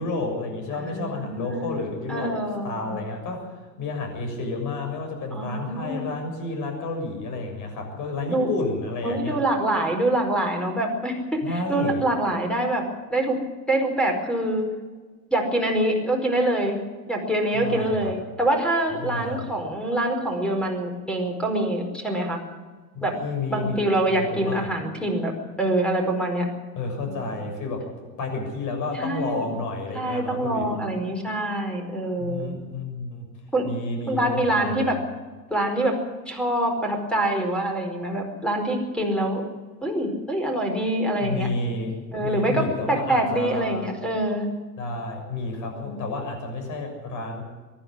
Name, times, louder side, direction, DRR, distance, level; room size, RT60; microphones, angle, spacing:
voice 1, 0.0-9.4 11.4-12.0 17.5-18.1 18.9-19.6 22.9-23.8 24.1-24.7 26.8-30.9 32.2-33.2 33.6-34.9 41.2-43.9 44.8-47.4, left 3 dB, 35° left, 3 dB, 6.9 m, -31 dB
voice 2, 0.8-1.7 2.1-3.0 5.3-6.0 8.3-8.5 9.0-12.8 13.1-13.4 13.7-14.7 15.3-16.8 17.1-22.4 23.0-23.2 23.5-25.3 25.6-26.5 27.1-27.2 28.9-29.5 29.9-32.5 33.5-33.7 34.1-35.0 35.5-36.0 36.3-39.4 39.8-41.5 42.1-44.5 45.7-46.0, right 1 dB, ahead, 3 dB, 4.8 m, -25 dB
24.0 x 12.0 x 9.8 m, 1.4 s
figure-of-eight pair, 85°, 50 cm